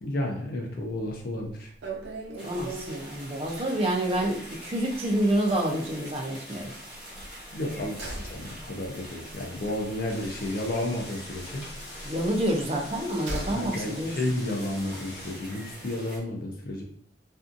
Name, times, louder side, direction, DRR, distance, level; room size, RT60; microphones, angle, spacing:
voice 1, 0.0-1.7 7.5-11.6 13.5-16.8, left 1 dB, 55° left, 0 dB, 0.5 m, -32 dB
sound 1, 0.9-1.2 1.4-1.5 1.8-4.5 4.9-5.1 5.3-5.4 7.1-11.0 11.3-13.7 14.0-14.1, right 2 dB, 80° right, 0.6 m, -40 dB
sound 2, 2.4-16.2, equal, 10° right, 1.2 m, -44 dB
voice 2, 2.4-6.7 12.0-14.1, right 1 dB, 35° right, 1 dB, 0.5 m, -28 dB
sound 3, 10.1-15.3, left 2 dB, 75° left, 1.0 m, -45 dB
2.6 x 2.3 x 2.5 m, 0.63 s
head